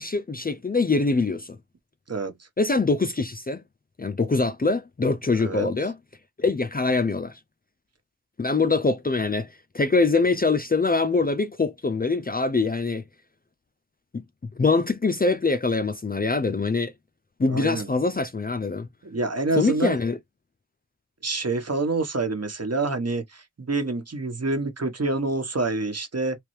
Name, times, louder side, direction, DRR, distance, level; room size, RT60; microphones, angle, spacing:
voice 1, 0.0-1.6 2.6-3.6 4.0-6.0 6.4-7.4 8.4-13.0 14.1-14.2 14.6-16.9 17.4-18.9 19.5-20.2, left 3 dB, 30° left, 0.4 m, -24 dB
voice 2, 5.4-5.7 17.5-17.9 19.0-20.0 21.2-26.4, right 3 dB, 50° right, 1.1 m, -27 dB
3.4 x 3.1 x 3.1 m
wide cardioid pair, 75°, 32 cm